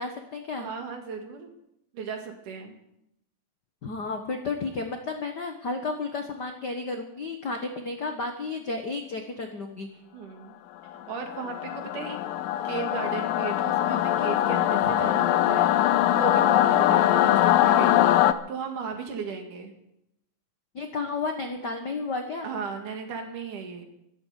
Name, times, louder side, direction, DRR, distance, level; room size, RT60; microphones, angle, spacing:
voice 1, 0.0-0.7 3.8-9.9 20.7-22.5, left 3 dB, 65° left, 5 dB, 1.0 m, -32 dB
voice 2, 0.6-1.5 1.9-2.8 10.1-10.6 11.1-12.2 12.6-19.7 22.4-23.8, right 5 dB, 65° right, 4 dB, 3.4 m, -36 dB
Singing / Musical instrument, 11.1-18.3, left 13 dB, 85° left, 2.4 m, -22 dB
13.0 x 13.0 x 8.2 m, 0.81 s
omnidirectional pair, 4.0 m